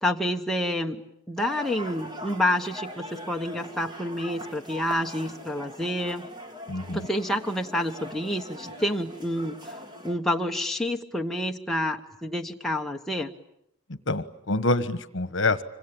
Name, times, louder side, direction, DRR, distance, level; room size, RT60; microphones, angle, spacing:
voice 1, 0.0-1.0 1.3-6.3 6.9-9.8 10.0-13.3, left 1 dB, ahead, 1 dB, 1.1 m, -28 dB
sound 1, 1.4-10.2, equal, 20° right, 2.3 m, -41 dB
voice 2, 6.7-7.1 13.9-15.6, left 2 dB, 60° left, 13 dB, 1.4 m, -26 dB
26.0 x 25.0 x 8.8 m, 0.77 s
head